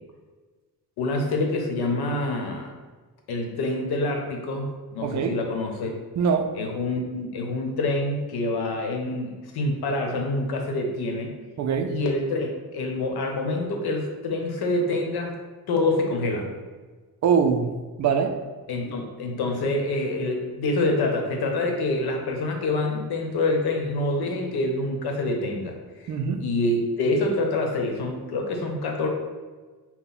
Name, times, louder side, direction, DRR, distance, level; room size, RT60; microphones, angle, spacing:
voice 1, 1.0-2.7 3.3-4.7 4.9-5.9 6.5-11.3 11.9-15.3 15.7-16.5 18.7-25.8 26.4-29.1, left 2 dB, 90° left, 2 dB, 0.9 m, -26 dB
voice 2, 5.0-5.4 6.2-6.5 11.6-11.9 17.2-17.7 18.0-18.3 26.1-26.4, right 6 dB, 50° right, 6 dB, 0.4 m, -22 dB
5.7 x 2.1 x 4.1 m, 1.4 s
cardioid pair, 170°, 37 cm